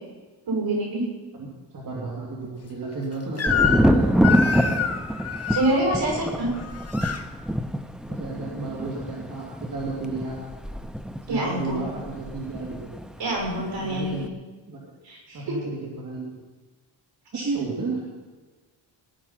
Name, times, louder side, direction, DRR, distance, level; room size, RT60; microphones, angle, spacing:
voice 1, 0.5-1.0 5.5-6.5 11.3-11.8 13.2-14.2 15.0-15.5 17.3-17.5, right 1 dB, 65° right, 0 dB, 6.9 m, -26 dB
voice 2, 1.3-4.1 4.6-4.8 8.1-10.4 11.3-12.9 13.8-14.3 14.7-14.8 15.3-16.4 17.3-18.0, right 3 dB, 40° right, -3 dB, 2.9 m, -32 dB
Crying sobbing / Screech, 3.4-3.9 4.2-5.7 6.5-7.2, left 7 dB, 30° left, 1.2 m, -26 dB
Thunder, 3.5-13.1 13.4-14.1, equal, ahead, 0.6 m, -26 dB
19.0 x 11.0 x 5.9 m, 1.3 s
wide cardioid pair, 145°, 47 cm